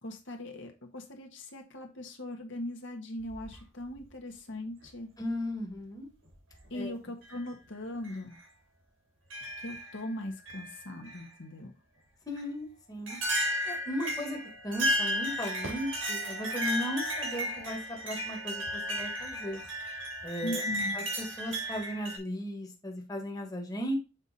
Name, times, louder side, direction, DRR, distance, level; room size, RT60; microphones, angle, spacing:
voice 1, 0.0-5.1 6.7-8.4 9.6-11.7 20.4-21.0, left 1 dB, 65° left, 3 dB, 1.3 m, -40 dB
sound 1, 3.2-4.1 5.2-5.3 6.3-6.6 7.2-7.4 8.0-8.2 9.3-10.0 10.5-11.2 12.4-12.5 13.1-22.2, equal, 90° right, 3.1 m, -34 dB
voice 2, 5.2-6.1 6.7-6.9 12.3-13.2 13.6-14.4 14.6-19.6 20.2-20.6 20.9-24.0, equal, 20° left, 1 dB, 1.4 m, -36 dB
7.0 x 4.0 x 4.1 m, 0.29 s
head